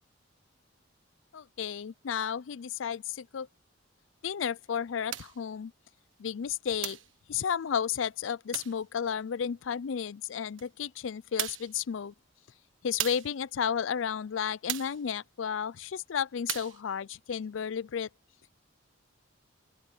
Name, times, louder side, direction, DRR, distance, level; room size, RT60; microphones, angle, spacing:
voice 1, 1.3-3.5 4.2-5.7 6.2-7.0 7.3-12.1 12.8-18.1, left 7 dB, 75° left, 0.4 m, -33 dB
sound 1, 5.1-5.4 6.8-7.1 8.5-8.8 10.6-10.7 11.4-11.8 13.0-13.4 14.7-15.0 16.5-16.8, right 12 dB, 80° right, 1.4 m, -36 dB
open air
head